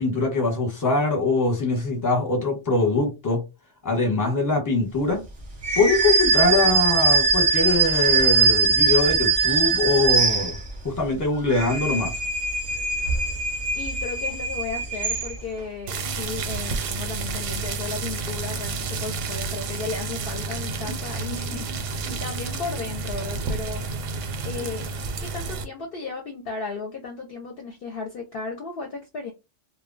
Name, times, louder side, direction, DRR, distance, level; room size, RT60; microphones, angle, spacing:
voice 1, 0.0-3.4 3.8-5.2 5.7-10.6 10.8-12.1, left 3 dB, 20° left, 0.8 m, -23 dB
sound 1, 5.6-10.9 11.4-15.6, right 4 dB, 35° right, 0.6 m, -22 dB
voice 2, 13.8-23.8 24.4-24.9 25.2-29.3, left 4 dB, 60° left, 0.7 m, -35 dB
sound 2, 15.9-25.6, right 4 dB, 90° right, 1.0 m, -30 dB
2.2 x 2.1 x 3.7 m
omnidirectional pair, 1.3 m